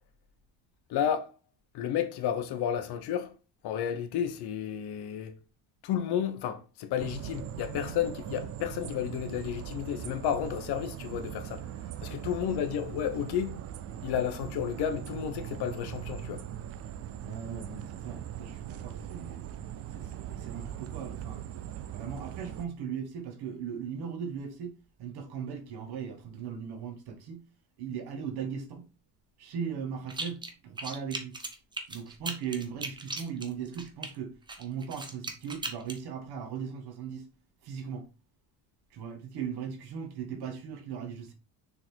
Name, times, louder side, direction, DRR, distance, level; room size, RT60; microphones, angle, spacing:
voice 1, 0.9-1.3 1.7-3.3 3.6-5.4 5.8-11.6 12.0-13.5 14.0-16.4, left 9 dB, 55° left, 1.0 m, -32 dB
sound 1, 7.0-22.7, right 11 dB, 35° right, 0.4 m, -40 dB
voice 2, 12.1-12.5 17.2-19.5 19.9-21.5 21.9-24.7 25.0-27.4 27.8-28.9 29.4-31.4 31.9-34.3 34.6-37.3 37.6-38.0 38.9-41.3, right 7 dB, 55° right, 1.7 m, -38 dB
sound 2, 30.1-30.5 30.8-34.1 34.5-36.0, right 2 dB, 10° right, 0.7 m, -37 dB
6.7 x 3.8 x 4.6 m
cardioid pair, 165°, 46 cm